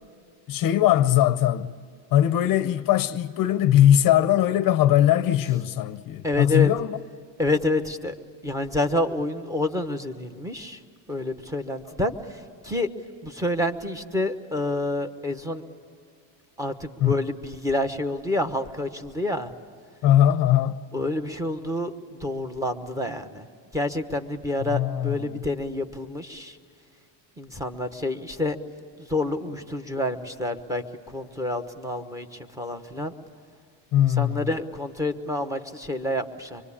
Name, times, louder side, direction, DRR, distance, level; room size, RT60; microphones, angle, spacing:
voice 1, 0.5-1.7 2.1-7.0 17.0-17.1 20.0-20.8 24.6-25.4 33.9-34.5, left 11 dB, 45° left, 0.7 m, -20 dB
voice 2, 6.2-6.7 7.4-8.1 8.4-10.8 11.1-12.1 12.6-12.9 13.2-15.6 16.6-19.5 20.9-21.9 22.2-23.5 23.7-26.6 27.4-28.6 29.0-33.1 34.2-36.6, left 2 dB, 5° right, 1.1 m, -28 dB
25.5 x 23.5 x 8.6 m
cardioid pair, 150°, 49 cm